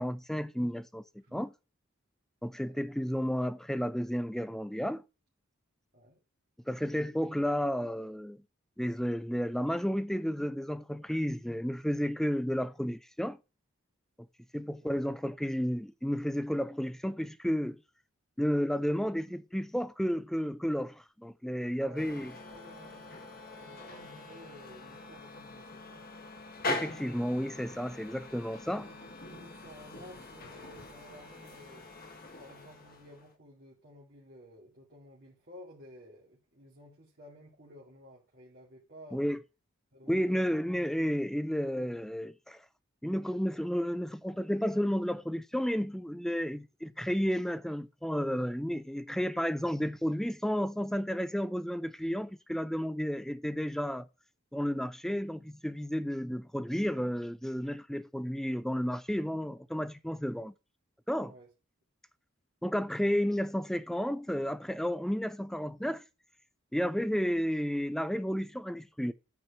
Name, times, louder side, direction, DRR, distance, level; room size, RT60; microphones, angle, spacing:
voice 1, 0.0-1.0 1.3-1.5 2.4-5.0 6.7-8.4 8.8-13.4 14.5-17.8 18.4-22.3 26.7-28.9 39.1-39.4 40.1-42.6 43.0-54.1 54.5-60.5 61.1-61.3 62.6-66.0 66.7-69.1, equal, ahead, 0.4 m, -32 dB
sound 1, 22.0-33.3, left 2 dB, 45° left, 1.4 m, -43 dB
voice 2, 22.5-23.1 23.6-26.0 28.7-31.9 32.4-39.2 39.9-41.2 61.2-61.5, equal, 50° right, 2.3 m, -54 dB
9.5 x 4.5 x 5.8 m
head